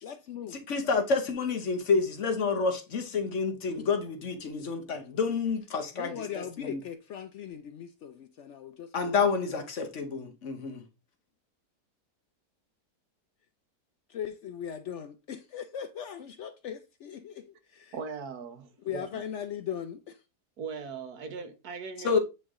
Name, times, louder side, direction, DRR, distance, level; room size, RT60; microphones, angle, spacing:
voice 1, 0.0-0.6 3.8-3.9 4.4-4.6 5.9-9.3 14.1-17.9 18.8-20.2, left 9 dB, 75° left, 0.6 m, -39 dB
voice 2, 0.7-6.8 8.9-10.8 22.0-22.2, left 4 dB, 50° left, 1.2 m, -29 dB
voice 3, 17.9-19.2 20.6-22.2, right 5 dB, 70° right, 1.4 m, -39 dB
8.7 x 3.2 x 3.6 m
omnidirectional pair, 1.8 m